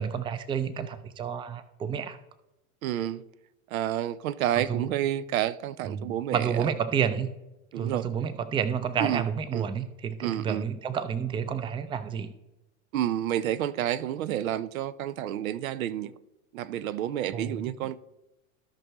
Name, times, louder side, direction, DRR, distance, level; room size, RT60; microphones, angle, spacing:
voice 1, 0.0-2.2 4.6-4.9 5.9-7.3 7.8-12.3 17.3-17.8, right 7 dB, 15° right, 0.4 m, -30 dB
voice 2, 2.8-3.2 3.7-6.5 7.7-8.1 9.0-9.2 9.5-9.7 10.2-10.6 12.9-16.1 16.5-18.0, right 11 dB, 90° right, 0.6 m, -29 dB
16.0 x 5.3 x 3.0 m
supercardioid pair, 120°, 40 cm